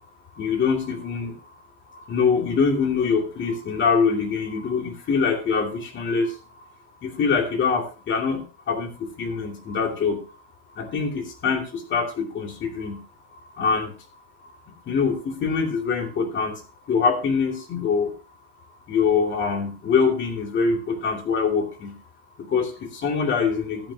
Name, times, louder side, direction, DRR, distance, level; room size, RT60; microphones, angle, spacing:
voice 1, 0.4-1.3 2.1-6.3 7.0-8.4 8.7-10.2 10.8-11.6 11.9-13.0 13.6-13.9 14.9-16.6 16.9-18.1 18.9-21.9 22.5-23.8, left 5 dB, 30° left, 3 dB, 2.7 m, -24 dB
13.5 x 8.8 x 2.8 m, 0.33 s
supercardioid pair, 145°, 39 cm